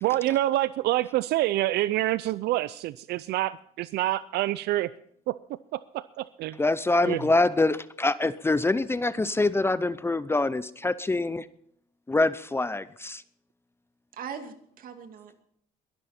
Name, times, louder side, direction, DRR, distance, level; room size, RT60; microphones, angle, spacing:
voice 1, 0.0-4.9 5.3-5.4 5.7-6.6 7.0-7.2, right 15 dB, 75° right, 16 dB, 0.5 m, -27 dB
voice 2, 6.6-11.5 12.1-13.2, left 2 dB, 15° left, 16 dB, 0.6 m, -25 dB
voice 3, 14.1-15.4, right 7 dB, 55° right, 7 dB, 2.4 m, -40 dB
22.5 x 11.5 x 4.3 m, 0.66 s
cardioid pair, 110°, 17 cm